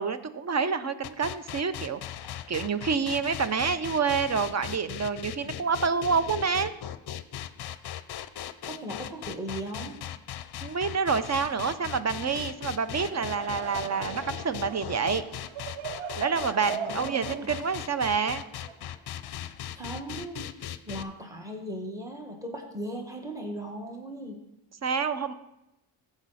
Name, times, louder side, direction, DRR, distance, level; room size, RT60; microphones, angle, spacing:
voice 1, 0.0-2.0 2.5-6.7 10.6-15.2 16.2-18.4 24.8-25.3, right 5 dB, 35° right, 13 dB, 0.6 m, -28 dB
sound 1, 1.0-21.0, left 11 dB, 55° left, 0.6 m, -38 dB
voice 2, 8.6-9.9 16.9-17.5 19.7-20.6 20.9-24.4, right 1 dB, 5° right, 2 dB, 1.7 m, -38 dB
Laughter / Crowd, 12.7-19.2, right 7 dB, 90° right, 0.8 m, -40 dB
15.0 x 5.1 x 4.1 m, 0.90 s
cardioid pair, 85°, 49 cm